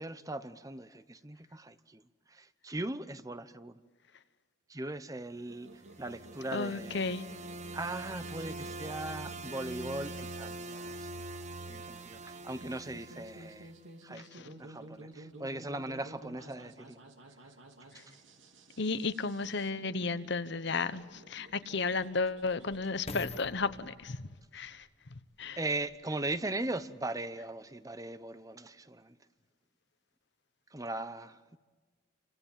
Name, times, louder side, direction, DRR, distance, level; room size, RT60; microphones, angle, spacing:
voice 1, 0.0-2.0 2.3-3.8 4.7-5.7 6.0-7.1 7.7-11.1 11.7-13.7 14.0-17.0 25.6-29.2 30.7-31.6, right 2 dB, 15° right, 0.8 m, -39 dB
sound 1, 5.5-23.2, right 1 dB, 70° right, 3.1 m, -53 dB
sound 2, 5.6-13.8, right 2 dB, 35° right, 1.0 m, -44 dB
voice 2, 6.5-7.2 14.3-14.5 18.8-24.3 24.5-24.9 25.4-25.6, left 4 dB, 60° left, 1.1 m, -33 dB
sound 3, 20.1-20.2 20.9-26.2 26.8-26.9, left 3 dB, 30° left, 1.1 m, -49 dB
29.5 x 25.5 x 7.5 m
head